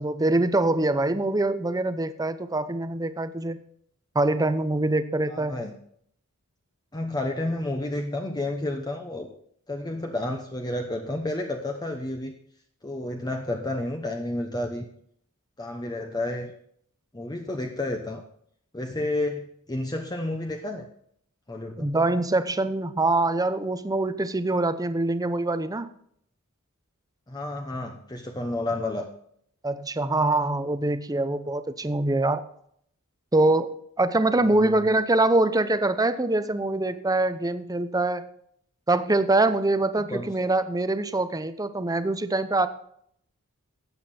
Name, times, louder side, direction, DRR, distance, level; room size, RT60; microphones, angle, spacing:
voice 1, 0.0-3.6 4.1-5.6 21.8-25.9 29.6-32.4 33.3-38.3 38.9-42.7, right 2 dB, 15° right, 11 dB, 0.7 m, -24 dB
voice 2, 5.3-5.7 6.9-9.3 9.7-12.3 12.8-14.9 15.6-16.5 17.1-18.2 18.7-20.9 21.5-21.9 27.3-29.1 34.4-34.9 40.0-40.3, left 1 dB, 20° left, 3 dB, 0.9 m, -31 dB
13.5 x 8.8 x 4.3 m, 0.67 s
head